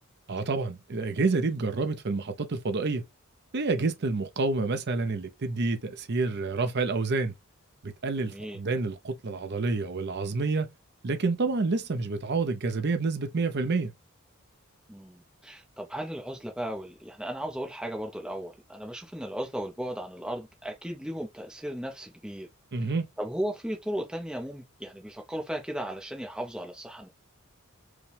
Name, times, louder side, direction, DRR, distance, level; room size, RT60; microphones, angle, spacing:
voice 1, 0.3-3.0 3.5-7.3 7.8-10.7 11.0-13.9 22.7-23.1, right 3 dB, 50° right, 0.6 m, -28 dB
voice 2, 14.9-22.5 23.2-27.1, equal, 5° right, 0.6 m, -36 dB
4.9 x 2.3 x 3.3 m
head